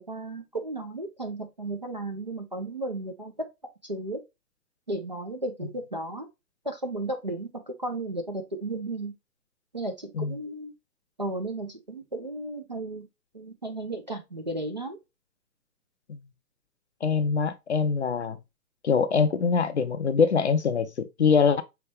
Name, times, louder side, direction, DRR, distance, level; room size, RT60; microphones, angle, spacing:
voice 1, 0.0-3.3 3.8-4.2 4.9-6.3 6.6-9.1 9.7-10.7 11.2-13.1 13.3-15.0, right 2 dB, 30° right, 0.4 m, -34 dB
voice 2, 17.0-18.4 18.8-21.6, left 5 dB, 45° left, 0.5 m, -23 dB
5.7 x 2.9 x 3.2 m
figure-of-eight pair, 130°, 48 cm